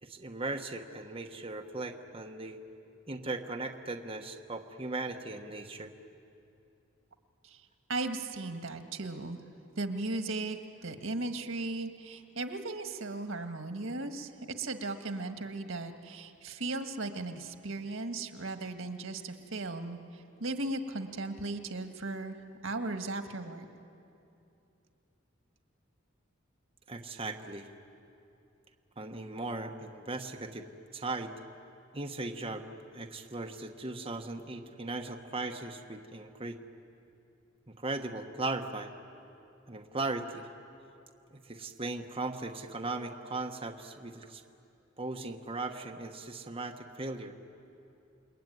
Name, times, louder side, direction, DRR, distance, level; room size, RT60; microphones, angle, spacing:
voice 1, 0.0-2.6 3.1-5.9 26.9-27.7 29.0-30.7 30.9-31.3 31.9-32.7 32.9-36.6 37.8-38.9 39.7-40.5 41.4-44.4 45.0-47.3, right 2 dB, 30° right, 4 dB, 1.2 m, -38 dB
voice 2, 7.9-9.4 9.8-10.6 10.8-14.3 14.6-23.6, right 2 dB, 90° right, 6 dB, 1.7 m, -37 dB
29.5 x 21.5 x 9.3 m, 2.7 s
head